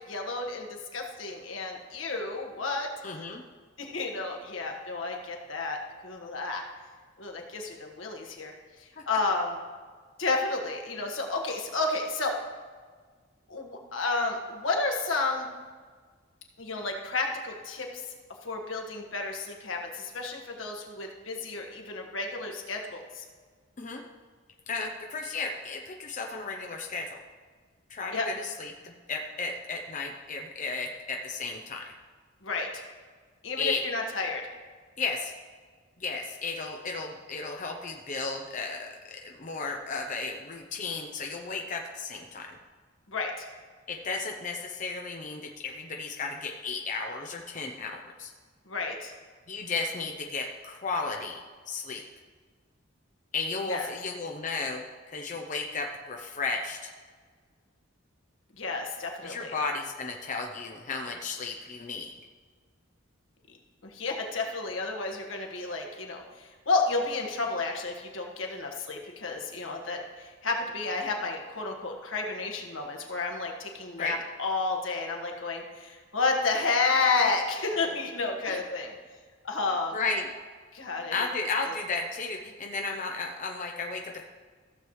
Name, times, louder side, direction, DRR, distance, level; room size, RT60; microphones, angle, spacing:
voice 1, 0.1-2.9 3.8-6.6 7.2-8.5 8.8-9.6 10.2-12.4 13.5-15.5 16.6-18.0 18.4-23.2 28.1-28.3 32.4-32.7 33.4-34.4 43.1-43.4 48.7-49.1 53.7-53.9 58.6-59.6 63.8-78.9 79.4-80.0 80.7-81.3 81.6-81.7, left 3 dB, 85° left, 1 dB, 1.5 m, -31 dB
voice 2, 3.0-3.4 23.8-24.0 24.7-27.2 27.9-31.9 33.6-33.8 35.0-35.3 36.0-38.9 39.2-42.6 43.9-48.3 49.5-51.4 51.7-52.0 53.3-56.9 59.2-62.1 74.0-74.2 78.4-78.6 79.9-80.3 81.1-84.3, left 4 dB, 40° left, 2 dB, 0.7 m, -34 dB
15.0 x 7.3 x 3.1 m, 1.5 s
head